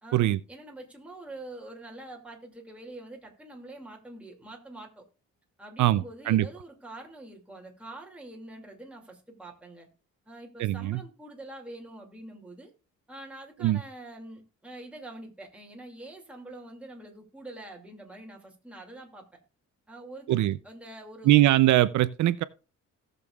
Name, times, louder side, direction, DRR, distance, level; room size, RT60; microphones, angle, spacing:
voice 1, 0.0-5.0 5.6-9.9 10.3-12.7 13.1-19.4 19.9-20.4 20.6-21.4, right 1 dB, 5° right, 2.4 m, -45 dB
voice 2, 5.8-6.4 10.6-11.0 13.6-13.8 20.3-20.6 21.2-22.4, right 15 dB, 75° right, 0.6 m, -22 dB
18.0 x 6.9 x 2.4 m
cardioid pair, 150°, 30 cm